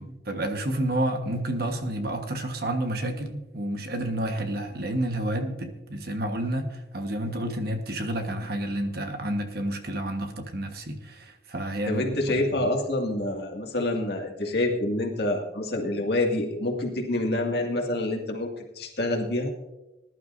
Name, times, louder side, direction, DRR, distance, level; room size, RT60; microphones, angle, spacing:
voice 1, 0.0-12.7, right 1 dB, 50° right, 5 dB, 1.3 m, -30 dB
voice 2, 11.9-19.5, left 1 dB, 55° left, 0 dB, 2.2 m, -27 dB
20.0 x 11.5 x 2.6 m, 1.0 s
head